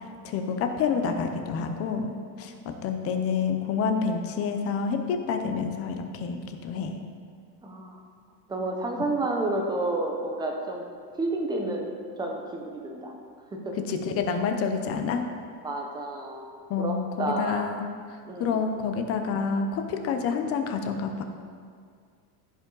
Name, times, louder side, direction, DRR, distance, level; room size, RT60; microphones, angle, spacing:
voice 1, 0.0-7.0 13.9-15.2 16.7-17.9 18.4-21.2, left 5 dB, 30° left, 6 dB, 0.6 m, -28 dB
voice 2, 2.3-2.6 7.6-8.0 8.5-10.9 11.2-13.1 13.5-13.8 15.6-17.7 18.3-18.6, right 2 dB, 10° right, 1 dB, 0.6 m, -31 dB
15.5 x 5.4 x 3.9 m, 2.1 s
cardioid pair, 165°, 49 cm